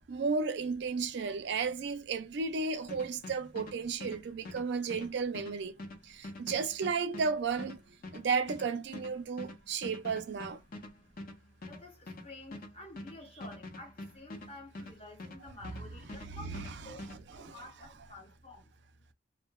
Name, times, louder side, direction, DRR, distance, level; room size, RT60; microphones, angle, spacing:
voice 1, 0.1-5.7 6.0-7.8 8.1-10.6 16.3-17.0 17.4-17.6, right 5 dB, 70° right, 0.4 m, -33 dB
sound 1, 2.9-17.2, left 1 dB, 50° left, 0.6 m, -45 dB
voice 2, 5.7-6.3 9.7-9.9 10.6-11.1 11.7-18.7, left 2 dB, 35° left, 1.0 m, -51 dB
2.6 x 2.1 x 2.2 m
head